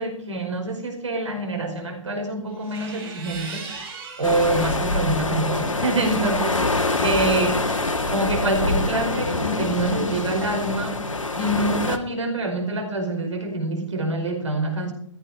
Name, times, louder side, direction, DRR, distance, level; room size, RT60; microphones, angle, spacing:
voice 1, 0.0-3.7 4.2-6.6 7.0-14.9, right 2 dB, 65° right, 3 dB, 4.9 m, -26 dB
sound 1, 2.5-4.8 5.3-8.1, right 3 dB, 45° right, 5.0 m, -39 dB
sound 2, 4.2-12.0, left 2 dB, 75° left, 1.6 m, -25 dB
14.5 x 14.0 x 4.8 m, 0.65 s
figure-of-eight pair, 120°, 17 cm